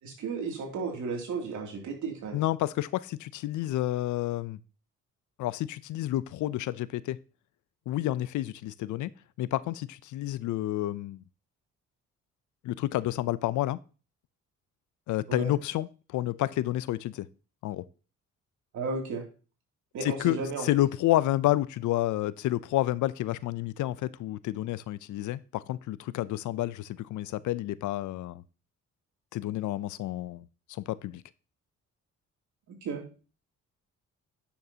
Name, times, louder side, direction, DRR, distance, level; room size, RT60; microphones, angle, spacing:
voice 1, 0.0-2.4 15.3-15.5 18.7-19.2 19.9-20.7 32.8-33.0, right 4 dB, 75° right, 2.7 m, -34 dB
voice 2, 2.3-4.6 5.4-7.2 7.9-9.1 9.4-11.2 12.6-13.8 15.1-17.3 17.6-17.8 20.0-28.4 29.3-31.2, left 15 dB, 75° left, 0.5 m, -30 dB
9.3 x 6.6 x 2.8 m
cardioid pair, 90°, 30 cm